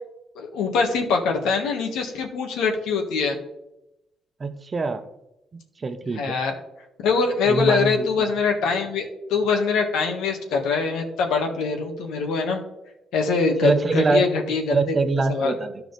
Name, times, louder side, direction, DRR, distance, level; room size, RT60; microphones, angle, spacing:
voice 1, 0.3-3.4 6.1-6.6 7.0-12.6 13.1-14.8 15.3-15.5, left 4 dB, 90° left, 3 dB, 1.5 m, -23 dB
voice 2, 4.4-5.1 5.5-6.4 7.5-8.3 13.6-14.3 14.7-15.7, right 3 dB, 35° right, 9 dB, 0.8 m, -24 dB
13.0 x 4.7 x 4.0 m, 0.89 s
cardioid pair, 90°, 0 cm